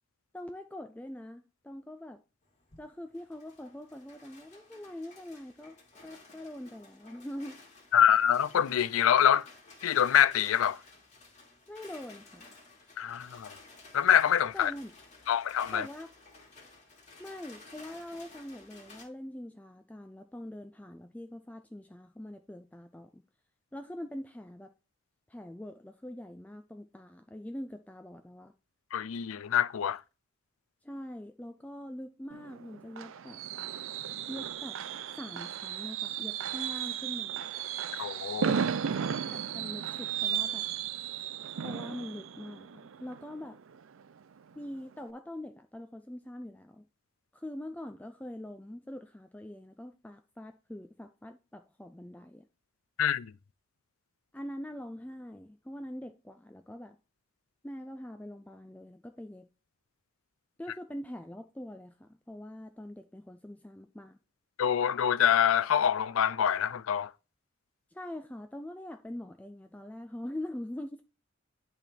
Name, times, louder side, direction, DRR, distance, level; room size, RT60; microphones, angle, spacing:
voice 1, 0.3-2.2 2.8-7.6 11.7-12.5 14.5-14.9 15.7-16.1 17.2-23.2 23.7-24.7 25.3-28.5 30.8-33.4 34.3-34.8 35.2-37.5 39.3-40.6 41.6-43.6 44.5-46.8 47.3-52.4 54.3-57.0 57.6-59.5 60.6-64.2 67.9-71.0, left 1 dB, 5° left, 0.4 m, -43 dB
sound 1, 2.4-19.0, left 3 dB, 35° left, 2.2 m, -54 dB
voice 2, 7.9-9.4 9.8-10.8 13.0-13.5 13.9-14.7 15.3-15.9 28.9-30.0 38.0-38.6 53.0-53.3 64.6-67.1, left 9 dB, 80° left, 0.4 m, -25 dB
Fireworks, 32.3-44.0 44.4-44.7 44.9-45.0, right 8 dB, 75° right, 0.4 m, -35 dB
10.5 x 3.6 x 4.3 m
head